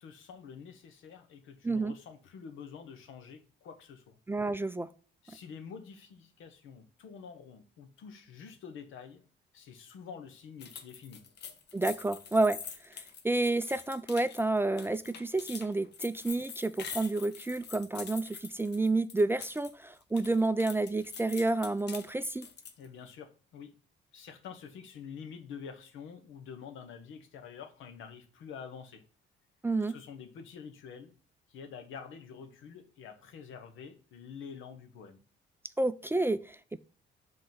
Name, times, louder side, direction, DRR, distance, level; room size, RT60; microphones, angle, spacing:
voice 1, 0.0-4.2 5.2-9.2 9.5-11.2 22.8-23.7 24.1-29.0 29.9-31.1 31.5-35.2, left 6 dB, 85° left, 1.1 m, -47 dB
voice 2, 4.3-4.9 11.7-12.6 12.8-22.5 29.6-29.9 35.8-36.8, right 2 dB, 10° right, 0.3 m, -30 dB
sound 1, 10.6-19.7 20.0-22.9, left 6 dB, 60° left, 0.9 m, -45 dB
5.4 x 3.8 x 5.8 m
cardioid pair, 90°, 20 cm